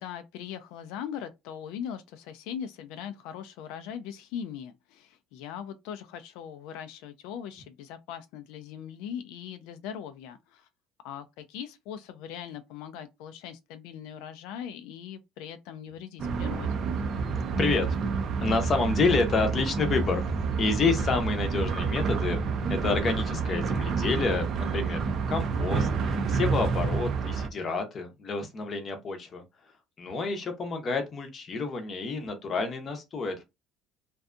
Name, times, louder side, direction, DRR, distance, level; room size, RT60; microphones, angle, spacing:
voice 1, 0.0-10.7 11.0-16.8 30.1-30.3, left 8 dB, 85° left, 0.3 m, -40 dB
sound 1, 16.2-27.5, right 5 dB, 40° right, 0.4 m, -28 dB
voice 2, 18.4-20.2 20.6-25.0 25.3-29.4 30.0-33.4, left 4 dB, 30° left, 0.6 m, -29 dB
2.6 x 2.2 x 2.5 m
cardioid pair, 170°, 0 cm